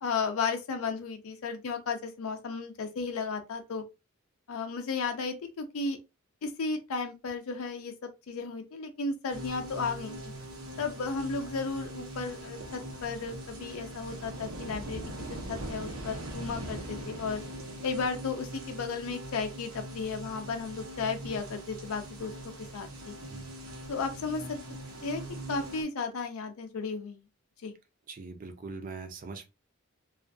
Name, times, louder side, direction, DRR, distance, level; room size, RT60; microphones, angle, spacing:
voice 1, 0.0-3.8 4.5-6.0 6.4-10.2 10.8-15.0 15.3-17.4 17.8-22.3 22.7-23.1 23.9-24.4 25.0-25.2 25.5-27.2 27.6-27.7, left 4 dB, 85° left, 0.4 m, -34 dB
sound 1, 9.3-25.8, right 1 dB, 90° right, 0.8 m, -41 dB
voice 2, 28.1-29.5, right 4 dB, 40° right, 0.5 m, -41 dB
2.4 x 2.2 x 2.5 m
head